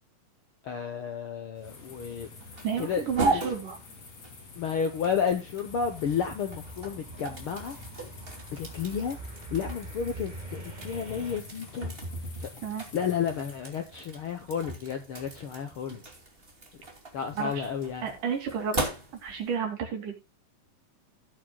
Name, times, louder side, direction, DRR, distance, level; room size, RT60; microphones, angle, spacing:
voice 1, 0.6-2.3 2.8-3.1 3.3-3.5 4.6-7.8 8.5-9.2 9.5-11.9 12.4-12.5 12.9-16.0 17.1-18.0, left 7 dB, 75° left, 6 dB, 1.2 m, -31 dB
sound 1, 1.5-19.6, right 2 dB, 20° right, 2.4 m, -38 dB
sound 2, 1.6-13.6, left 4 dB, 50° left, 3.6 m, -48 dB
voice 2, 2.6-3.8 12.6-12.9 17.4-17.7 18.0-18.8 19.2-20.1, right 7 dB, 65° right, 3 dB, 4.2 m, -31 dB
sound 3, 5.7-11.4, right 2 dB, 40° right, 0.6 m, -44 dB
17.0 x 8.8 x 2.3 m, 0.24 s
omnidirectional pair, 4.0 m